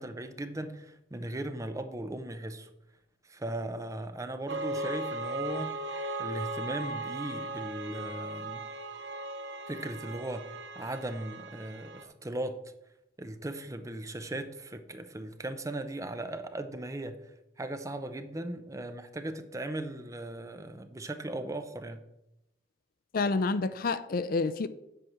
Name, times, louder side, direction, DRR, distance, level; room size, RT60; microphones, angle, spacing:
voice 1, 0.0-2.7 3.2-5.7 6.2-8.6 9.7-12.6 13.2-22.0, right 1 dB, 20° right, 0.6 m, -38 dB
sound 1, 4.5-12.0, right 2 dB, 70° right, 0.8 m, -37 dB
voice 2, 23.1-24.7, left 3 dB, 50° left, 0.4 m, -28 dB
8.0 x 4.7 x 7.1 m
head